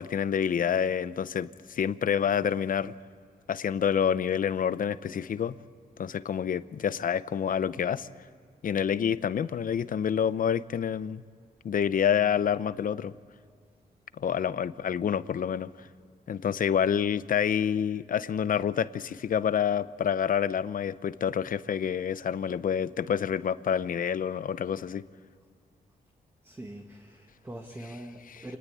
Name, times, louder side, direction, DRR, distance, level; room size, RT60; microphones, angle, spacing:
voice 1, 0.0-2.9 3.5-5.6 6.0-8.1 8.6-11.2 11.6-13.1 14.2-15.9 16.3-25.0 28.3-28.5, left 8 dB, 60° left, 15 dB, 0.7 m, -28 dB
voice 2, 26.4-28.6, right 1 dB, 15° right, 2 dB, 1.7 m, -43 dB
27.5 x 19.5 x 8.6 m, 2.1 s
wide cardioid pair, 135°, 16 cm